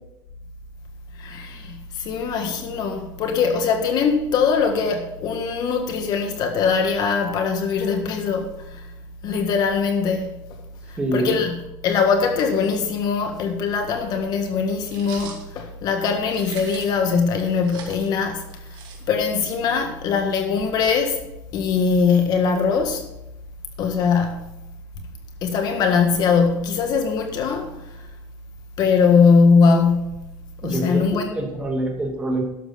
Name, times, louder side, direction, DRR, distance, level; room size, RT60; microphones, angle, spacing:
voice 1, 1.2-8.8 9.2-10.3 10.9-11.6 11.8-18.7 19.1-21.2 21.5-23.1 23.8-24.6 25.4-27.8 28.8-30.3 30.6-31.4, left 5 dB, 50° left, 1.5 m, -21 dB
voice 2, 11.0-11.4 30.6-32.4, right 2 dB, 15° right, 2.6 m, -25 dB
sound 1, 14.9-15.4 16.3-17.0 17.4-19.4, right 6 dB, 55° right, 2.9 m, -41 dB
12.0 x 7.3 x 5.7 m
cardioid pair, 140°, 9 cm